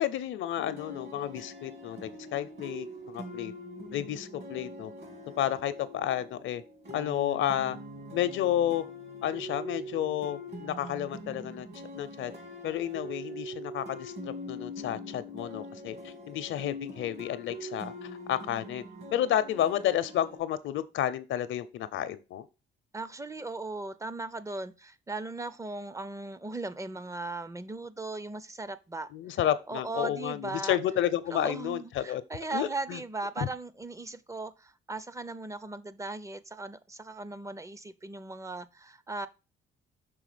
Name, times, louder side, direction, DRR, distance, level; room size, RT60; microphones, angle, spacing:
voice 1, 0.0-3.5 3.9-4.9 5.4-6.6 6.9-7.8 8.1-8.9 9.2-11.7 11.9-12.3 12.6-18.8 19.1-22.5 29.1-32.2 32.5-33.0 33.4-33.5, left 11 dB, 75° left, 0.7 m, -31 dB
sound 1, 0.5-20.4, equal, 55° right, 2.5 m, -43 dB
voice 2, 22.9-29.1 29.7-30.8 31.3-39.3, right 3 dB, 15° right, 0.5 m, -38 dB
6.2 x 3.7 x 5.0 m
cardioid pair, 90°, 20 cm